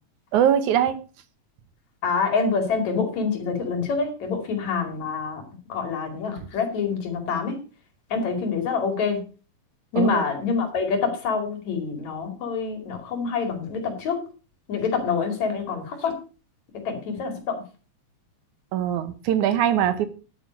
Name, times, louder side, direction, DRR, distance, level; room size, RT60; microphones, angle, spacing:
voice 1, 0.3-1.0 6.4-6.5 10.0-10.2 18.7-20.1, right 10 dB, 75° right, 12 dB, 2.4 m, -22 dB
voice 2, 2.0-5.4 5.7-7.6 8.1-9.2 9.9-14.2 14.7-16.1 16.9-17.6, left 5 dB, 65° left, 5 dB, 3.8 m, -26 dB
11.0 x 8.9 x 5.2 m, 0.35 s
omnidirectional pair, 3.5 m